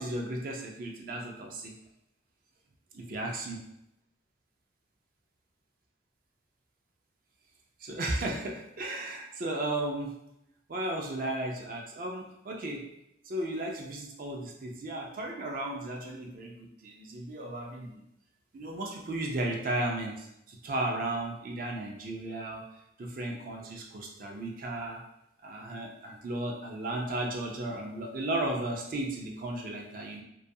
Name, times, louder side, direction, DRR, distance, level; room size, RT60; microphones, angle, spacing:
voice 1, 0.0-1.7 2.9-3.6 7.8-10.1 10.7-12.8 13.2-18.0 18.5-22.6 23.0-25.0 25.4-30.2, right 1 dB, 45° right, 0 dB, 0.4 m, -35 dB
2.3 x 2.2 x 2.6 m, 0.82 s
head